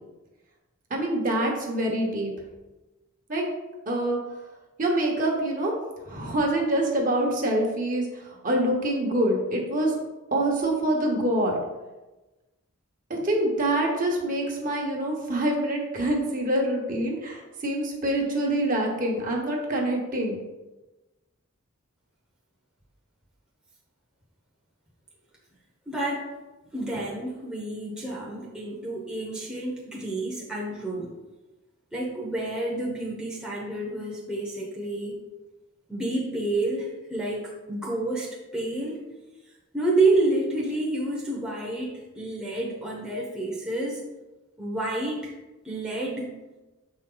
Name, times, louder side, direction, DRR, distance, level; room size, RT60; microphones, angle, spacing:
voice 1, 0.9-2.3 3.3-3.4 3.9-4.2 4.8-5.7 6.1-10.0 10.3-11.6 13.1-20.4, right 1 dB, 35° right, 0 dB, 1.1 m, -25 dB
voice 2, 25.9-26.3 26.7-31.1 31.9-35.2 35.9-39.0 39.7-44.0 44.6-45.3 45.6-46.3, right 2 dB, 5° right, -5 dB, 0.9 m, -29 dB
7.0 x 4.5 x 3.9 m, 1.1 s
head